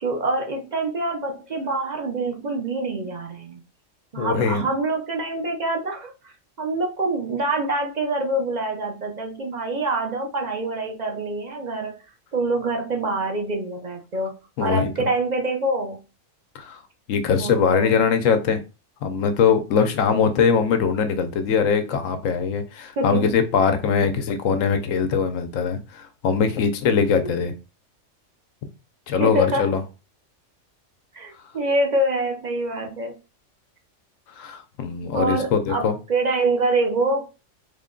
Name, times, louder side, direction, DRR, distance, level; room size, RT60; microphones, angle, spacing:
voice 1, 0.0-3.6 4.1-12.0 12.3-14.3 14.6-16.0 17.4-18.0 23.0-23.4 29.2-29.7 31.1-33.2 35.1-37.2, right 2 dB, 45° right, 2 dB, 0.6 m, -25 dB
voice 2, 4.1-4.6 14.6-14.9 16.5-16.8 17.1-18.6 19.0-27.5 29.1-29.8 34.4-36.0, left 6 dB, 80° left, 8 dB, 1.0 m, -21 dB
3.5 x 2.2 x 3.7 m, 0.31 s
omnidirectional pair, 1.3 m